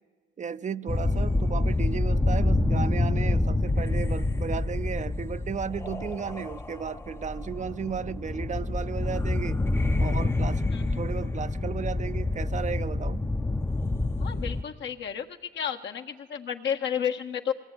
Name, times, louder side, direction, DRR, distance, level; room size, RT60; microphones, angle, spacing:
voice 1, 0.4-9.6 10.0-10.7 10.9-13.2, right 6 dB, 40° right, 0.6 m, -34 dB
sound 1, 0.9-14.6, left 2 dB, 10° left, 0.7 m, -27 dB
voice 2, 14.2-15.3 15.5-17.5, left 8 dB, 70° left, 1.7 m, -31 dB
22.0 x 18.0 x 9.8 m
cardioid pair, 90°, 20 cm